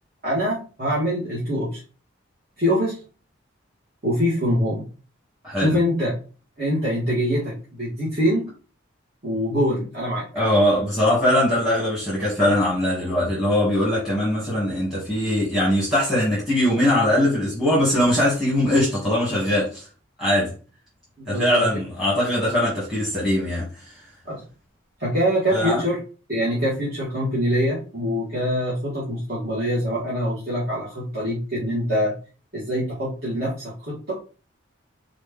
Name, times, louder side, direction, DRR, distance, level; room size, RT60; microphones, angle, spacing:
voice 1, 0.2-1.8 2.6-3.0 4.0-4.8 5.5-6.1 6.6-8.5 9.2-10.3 21.3-21.6 24.3-24.4 25.0-26.0 26.3-32.2 32.5-34.1, equal, 50° right, 1.6 m, -24 dB
voice 2, 10.3-19.9 20.2-20.5 21.3-24.0 25.5-25.8, left 1 dB, ahead, 1.3 m, -21 dB
3.9 x 3.2 x 3.6 m
head